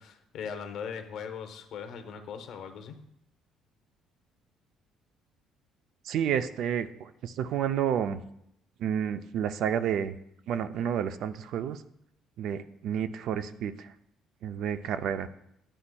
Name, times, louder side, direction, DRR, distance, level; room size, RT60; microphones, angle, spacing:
voice 1, 0.0-3.0, left 7 dB, 60° left, 6 dB, 0.7 m, -39 dB
voice 2, 6.0-8.2 8.8-10.1 10.5-11.8 12.4-13.9 14.4-15.3, right 9 dB, 60° right, 12 dB, 0.3 m, -30 dB
9.9 x 4.3 x 2.2 m, 0.78 s
cardioid pair, 140°, 0 cm